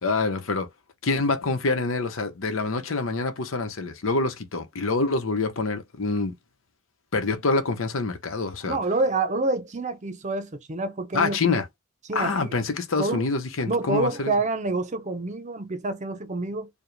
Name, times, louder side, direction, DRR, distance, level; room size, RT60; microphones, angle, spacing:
voice 1, 0.0-0.7 1.0-6.3 7.1-8.8 11.1-11.6 12.1-14.3, left 3 dB, 80° left, 0.9 m, -26 dB
voice 2, 8.7-11.6 12.1-12.5 13.0-13.2 13.7-16.7, right 3 dB, 35° right, 0.7 m, -27 dB
4.8 x 2.3 x 3.2 m
head